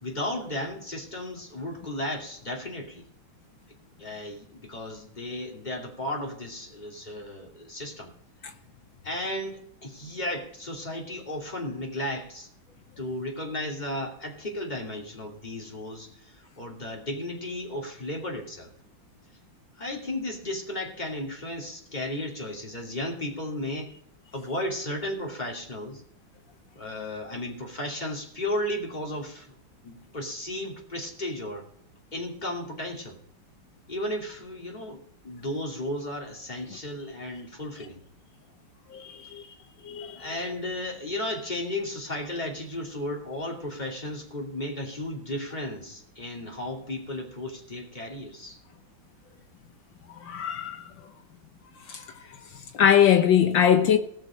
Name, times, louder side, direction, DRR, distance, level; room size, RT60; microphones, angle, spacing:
voice 1, 0.0-3.0 4.0-8.1 9.0-12.5 13.0-18.7 19.8-23.9 24.3-26.0 26.7-29.5 29.8-31.7 32.1-33.2 33.9-38.0 40.2-48.6, left 1 dB, 20° left, 2.7 m, -34 dB
voice 2, 38.9-39.4 39.8-40.2 50.2-50.8 51.9-52.0 52.7-54.0, left 9 dB, 70° left, 1.5 m, -21 dB
19.0 x 6.4 x 5.2 m
omnidirectional pair, 2.3 m